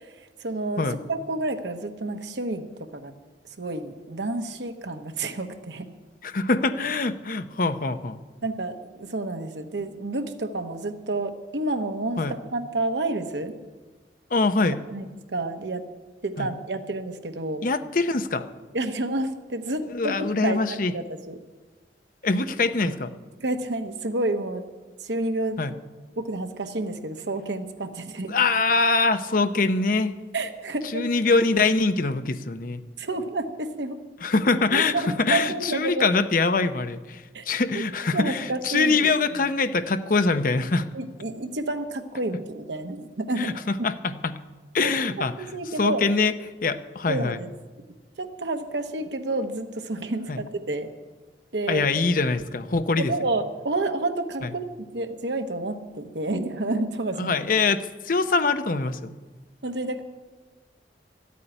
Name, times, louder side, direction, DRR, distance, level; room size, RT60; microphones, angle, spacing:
voice 1, 0.4-3.1 3.5-5.9 8.4-13.5 14.9-15.8 16.2-17.6 18.7-21.4 23.4-24.7 25.0-25.6 26.2-28.3 30.3-31.1 33.0-34.0 34.7-36.1 37.3-37.5 38.1-39.1 40.9-43.5 43.8-43.9 44.8-46.0 47.1-47.5 48.2-50.9 51.5-51.9 53.0-57.3 59.6-60.0, right 2 dB, 80° right, 6 dB, 1.1 m, -30 dB
voice 2, 6.2-8.2 12.2-12.4 14.3-14.8 16.4-16.5 17.6-18.5 19.9-20.9 22.2-23.1 25.6-25.7 28.3-30.1 30.9-32.8 34.2-40.9 43.4-44.3 44.7-45.5 45.8-46.3 46.6-47.4 50.3-50.4 51.7-53.1 54.4-54.5 57.2-59.1, left 3 dB, 50° left, 11 dB, 0.7 m, -24 dB
13.0 x 8.4 x 10.0 m, 1.3 s
head